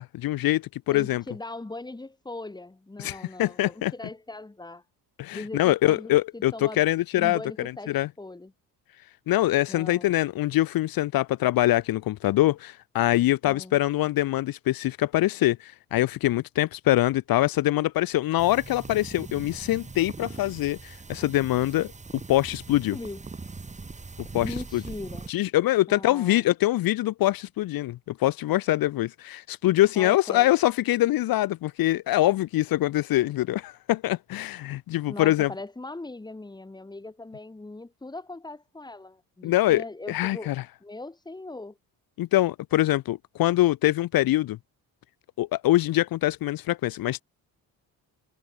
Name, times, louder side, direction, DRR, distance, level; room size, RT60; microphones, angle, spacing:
voice 1, 0.0-1.2 3.0-3.9 5.2-7.4 7.9-8.1 9.3-21.9 22.3-23.0 24.3-24.8 25.3-35.5 39.4-40.6 42.2-44.6 45.4-47.2, left 15 dB, 70° left, 0.9 m, -24 dB
voice 2, 0.9-4.8 5.3-6.8 7.1-8.5 9.7-10.1 13.4-13.8 22.9-23.2 24.3-25.3 25.9-26.4 29.9-30.6 35.1-40.5 40.8-41.8, left 2 dB, 10° left, 3.1 m, -40 dB
sound 1, 18.4-25.3, right 3 dB, 20° right, 3.5 m, -41 dB
cardioid pair, 135°, 37 cm